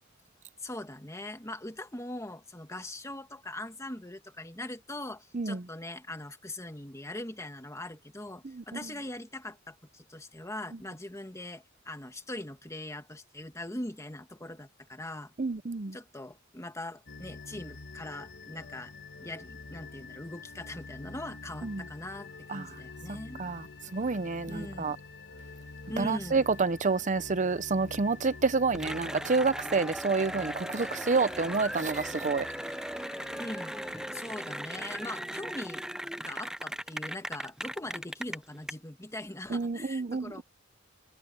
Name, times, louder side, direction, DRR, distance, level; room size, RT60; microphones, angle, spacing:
voice 1, 0.6-15.3 15.9-18.9 19.2-23.4 24.5-25.0 25.9-26.4 33.4-33.8 34.1-35.8 36.2-40.4, left 1 dB, 15° left, 1.8 m, -41 dB
voice 2, 5.3-5.7 8.4-8.8 15.4-16.0 21.6-21.8 22.5-22.7 23.1-25.0 26.0-32.5 39.5-40.4, right 4 dB, 40° right, 0.7 m, -29 dB
sound 1, 17.1-34.1, left 3 dB, 65° left, 1.6 m, -47 dB
Cheering / Applause, 28.7-38.7, right 1 dB, 5° right, 0.6 m, -38 dB
head